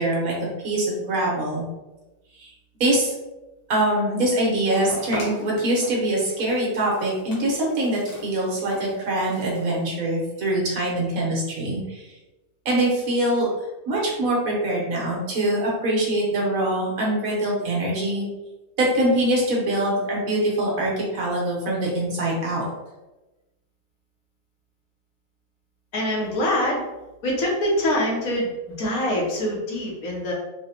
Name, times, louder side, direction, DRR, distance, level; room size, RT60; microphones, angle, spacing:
voice 1, 0.0-1.6 2.4-2.5 2.8-3.1 3.7-12.1 12.6-13.5 13.9-18.2 18.8-22.6, right 1 dB, 75° right, -4 dB, 1.4 m, -23 dB
sound 1, 4.9-9.9, equal, 60° left, 0.4 m, -39 dB
voice 2, 25.9-26.8 27.2-30.3, left 1 dB, 80° left, -3 dB, 1.3 m, -24 dB
3.8 x 2.1 x 2.8 m, 1.1 s
omnidirectional pair, 1.5 m